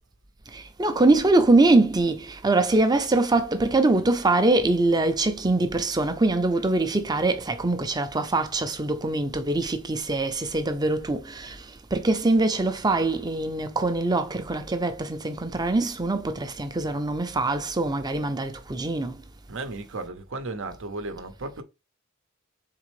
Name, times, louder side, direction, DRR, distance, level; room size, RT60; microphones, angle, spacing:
voice 1, 0.5-11.6 11.9-19.1, right 2 dB, 20° right, 0.6 m, -23 dB
voice 2, 19.5-21.6, right 2 dB, 65° right, 0.8 m, -34 dB
4.2 x 3.8 x 3.1 m
head